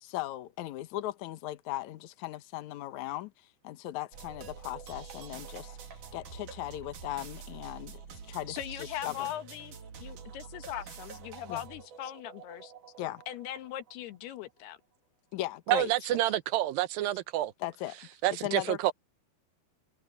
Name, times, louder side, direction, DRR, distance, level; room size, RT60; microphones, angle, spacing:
voice 1, 0.0-3.3 3.6-5.8 6.1-8.0 8.3-9.3 11.5-11.7 13.0-13.2 15.3-16.1 17.6-18.0 18.4-18.9, left 15 dB, 65° left, 2.0 m, -38 dB
sound 1, 4.1-14.3, right 6 dB, 55° right, 3.6 m, -47 dB
voice 2, 8.5-12.7 13.3-14.8, left 12 dB, 90° left, 3.4 m, -40 dB
voice 3, 15.7-17.5 18.2-18.9, right 14 dB, 75° right, 2.5 m, -28 dB
omnidirectional pair, 4.5 m